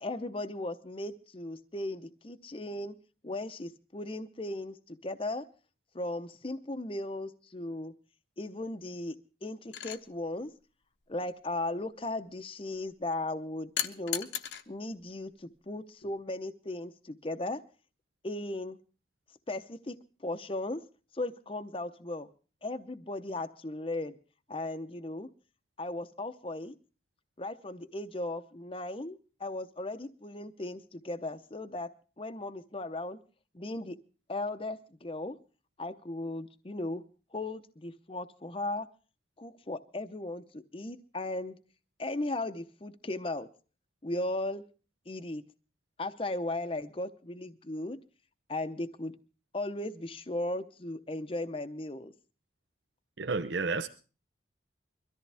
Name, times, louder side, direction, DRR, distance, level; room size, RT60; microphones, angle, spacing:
voice 1, 0.0-3.0 3.2-5.5 5.9-7.9 8.4-10.5 11.1-14.3 14.7-17.6 18.2-18.8 19.5-20.0 20.2-20.8 21.1-22.3 22.6-24.2 24.5-25.3 25.8-26.7 27.4-31.9 32.2-33.2 33.5-34.0 34.3-35.4 35.8-37.0 37.3-38.9 39.4-41.6 42.0-43.5 44.0-44.6 45.1-45.4 46.0-48.0 48.5-49.1 49.5-52.1, left 2 dB, 30° left, 0.7 m, -36 dB
sound 1, 9.7-10.0 13.8-14.6 16.0-16.2, left 10 dB, 65° left, 1.0 m, -35 dB
voice 2, 53.2-53.9, right 3 dB, 75° right, 0.7 m, -31 dB
23.0 x 13.5 x 3.4 m
head